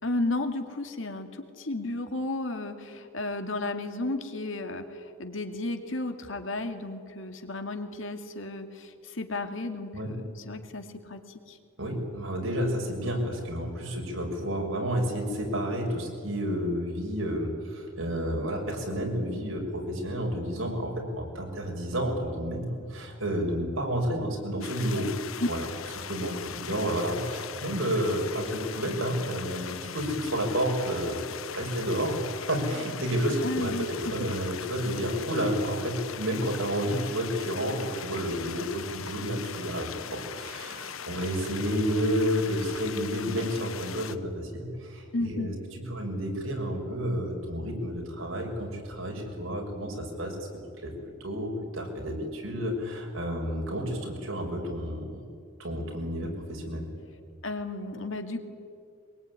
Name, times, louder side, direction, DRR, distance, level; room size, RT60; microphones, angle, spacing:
voice 1, 0.0-11.2 11.5-11.6 33.4-34.1 45.1-45.5 57.4-58.4, left 2 dB, 70° left, 6 dB, 2.4 m, -33 dB
voice 2, 11.8-25.1 25.5-25.7 26.1-31.2 31.5-50.4 50.8-50.9 51.2-55.2 55.6-56.9, equal, 80° right, 1 dB, 6.3 m, -30 dB
sound 1, 24.6-44.2, left 8 dB, 90° left, 1.1 m, -40 dB
23.5 x 22.0 x 9.7 m, 2.3 s
head